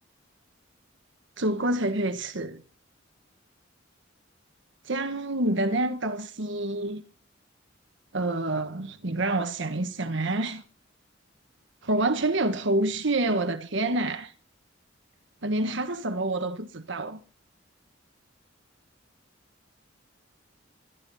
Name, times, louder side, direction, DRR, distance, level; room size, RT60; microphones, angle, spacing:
voice 1, 1.4-2.6 4.9-7.0 8.1-10.6 11.8-14.3 15.4-17.2, right 2 dB, 65° right, 1.4 m, -27 dB
21.5 x 14.0 x 4.2 m
head